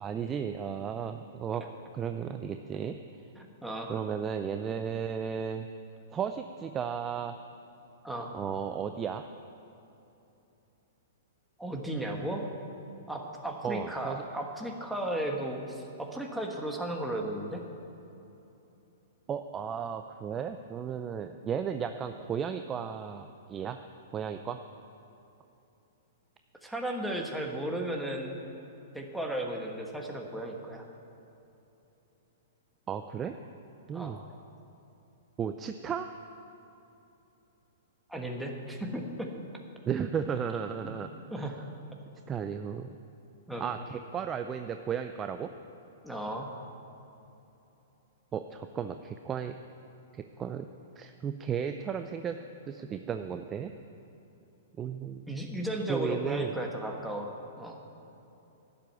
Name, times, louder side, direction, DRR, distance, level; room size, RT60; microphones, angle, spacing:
voice 1, 0.0-1.6 1.9-3.0 3.9-5.7 6.1-7.4 8.3-9.2 13.6-14.2 19.3-23.8 24.1-24.6 32.9-33.3 33.9-34.2 35.4-36.1 39.9-41.1 41.4-41.5 42.3-43.0 43.6-45.5 48.3-49.6 50.1-50.7 51.0-52.4 52.7-53.7 54.8-55.2 55.9-56.5, right 7 dB, 20° right, 7 dB, 0.4 m, -34 dB
voice 2, 3.4-4.0 8.0-8.3 11.6-12.5 13.1-17.6 26.6-28.4 28.9-30.8 33.9-34.2 38.1-39.3 40.8-40.9 41.3-41.5 43.5-43.7 46.0-46.5 55.3-57.8, right 1 dB, ahead, 0 dB, 1.4 m, -35 dB
11.5 x 7.7 x 9.5 m, 3.0 s
hypercardioid pair, 140°, 0 cm